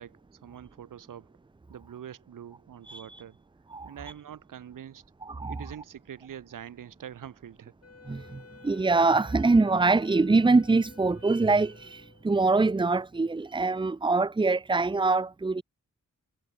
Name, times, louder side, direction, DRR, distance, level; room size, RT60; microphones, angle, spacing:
voice 1, 0.0-1.3 1.7-3.4 3.8-5.0 5.5-7.7, right 9 dB, 80° right, 1.0 m, -44 dB
voice 2, 2.8-3.2 3.7-3.9 5.2-5.6 8.1-15.6, right 3 dB, 15° right, 0.5 m, -24 dB
Wind instrument woodwind instrument, 7.8-12.4, left 5 dB, 50° left, 2.7 m, -53 dB
cardioid pair, 55°, 32 cm